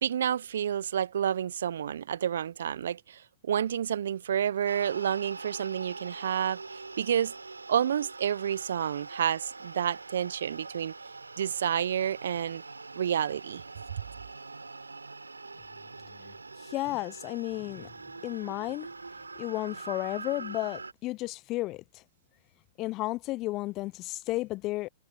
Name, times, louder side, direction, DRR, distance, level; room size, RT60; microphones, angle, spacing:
voice 1, 0.0-7.3 7.7-10.9 11.4-12.6 13.0-13.6, right 9 dB, 65° right, 0.7 m, -29 dB
sound 1, 4.7-20.9, right 3 dB, 85° right, 3.7 m, -44 dB
voice 2, 16.7-17.9 18.2-18.9 19.4-21.8 22.8-24.9, left 19 dB, 35° left, 1.0 m, -33 dB
figure-of-eight pair, 105°, 0 cm